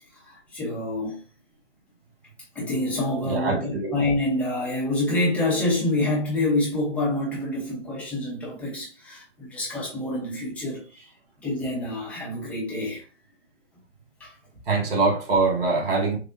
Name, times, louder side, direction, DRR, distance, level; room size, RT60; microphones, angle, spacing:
voice 1, 0.2-1.2 2.5-11.0 11.4-13.0 14.2-14.4, left 2 dB, 5° left, 0.9 m, -27 dB
voice 2, 3.2-3.9 14.7-16.2, right 3 dB, 50° right, 1.5 m, -23 dB
6.4 x 2.4 x 2.6 m
figure-of-eight pair, 140°, 38 cm